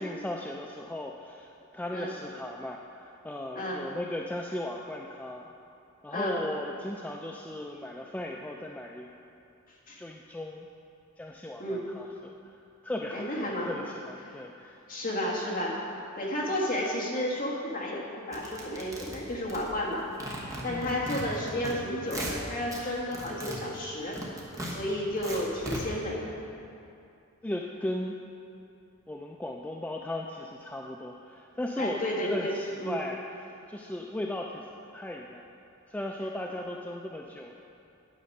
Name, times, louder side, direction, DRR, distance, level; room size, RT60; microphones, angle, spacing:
voice 1, 0.0-5.4 6.0-9.1 10.0-10.7 11.2-12.5 12.8-14.8 20.7-21.0 27.4-28.2 29.1-34.7 34.9-35.5 35.9-37.6, left 1 dB, 5° left, 0 dB, 0.3 m, -37 dB
voice 2, 13.1-13.7 14.9-15.8 16.2-20.1 20.6-24.2 24.7-26.4 31.8-33.0, left 1 dB, 40° left, -4 dB, 1.6 m, -32 dB
sound 1, 18.3-19.9 20.2-21.7 22.0-22.8 23.1-25.8, right 1 dB, 15° right, 1.1 m, -38 dB
9.3 x 6.8 x 5.4 m, 2.6 s
head